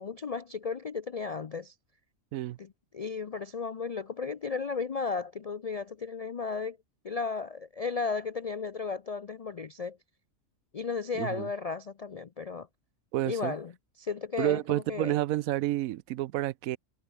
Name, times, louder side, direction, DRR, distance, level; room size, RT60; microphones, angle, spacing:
voice 1, 0.0-1.7 2.6-2.7 2.9-6.8 7.0-10.0 10.7-12.7 13.3-13.7 14.0-15.2, left 5 dB, 60° left, 0.4 m, -34 dB
voice 2, 11.2-11.5 13.1-13.5 14.4-16.8, right 15 dB, 90° right, 1.0 m, -30 dB
omnidirectional pair, 1.4 m